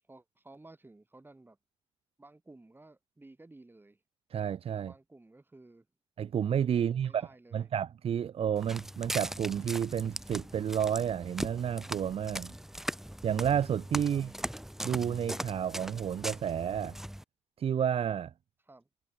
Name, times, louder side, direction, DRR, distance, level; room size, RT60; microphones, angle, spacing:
voice 1, 0.1-1.6 2.2-4.0 4.7-5.9 6.8-7.7 14.1-14.5 18.7-18.9, right 2 dB, 20° right, 7.1 m, -55 dB
voice 2, 4.3-4.9 6.2-12.5 13.2-14.3 14.8-17.0 17.6-18.3, right 8 dB, 65° right, 0.5 m, -31 dB
Walk footsteps, 8.6-17.2, equal, 5° right, 2.6 m, -40 dB
wide cardioid pair, 105°, 11 cm